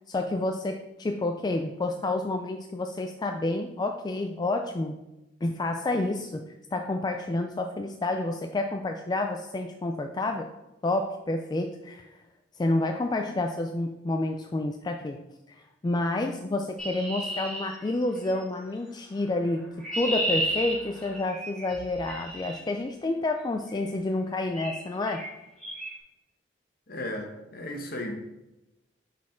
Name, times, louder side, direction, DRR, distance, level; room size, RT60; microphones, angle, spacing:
voice 1, 0.1-5.0 5.4-6.5 6.7-10.5 10.8-12.0 12.6-15.2 15.8-25.3, left 2 dB, 25° left, 4 dB, 0.3 m, -29 dB
Chirp tweet, 16.8-18.4 19.4-22.6 23.7-24.0 24.5-24.8 25.1-25.3 25.6-25.9, equal, ahead, 2.4 m, -33 dB
voice 2, 26.9-28.1, left 1 dB, 55° left, 3 dB, 1.1 m, -35 dB
6.0 x 4.2 x 4.4 m, 0.96 s
head